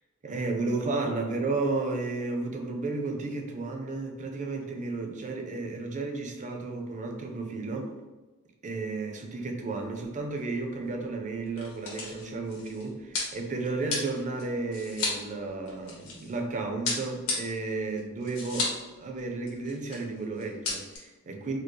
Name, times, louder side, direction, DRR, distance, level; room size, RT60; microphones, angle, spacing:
voice 1, 0.2-7.9 8.6-21.6, right 3 dB, 35° right, 3 dB, 0.5 m, -33 dB
sound 1, 9.8-10.1 10.4-10.5 11.3-16.4 16.8-18.9 19.2-19.3 19.5-20.0 20.4-21.0, left 3 dB, 70° left, 1.1 m, -34 dB
4.4 x 2.0 x 3.1 m, 1.2 s
head